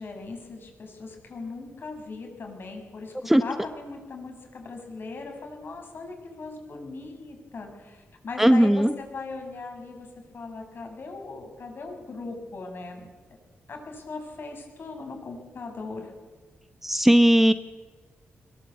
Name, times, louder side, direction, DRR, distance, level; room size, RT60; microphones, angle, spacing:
voice 1, 0.0-3.1 3.4-10.1 10.3-13.1 13.7-16.1, left 3 dB, 55° left, 3 dB, 7.5 m, -39 dB
voice 2, 8.4-8.9 16.8-17.5, equal, 5° right, 11 dB, 0.9 m, -17 dB
21.5 x 21.0 x 8.5 m, 1.4 s
cardioid pair, 90°, 4 cm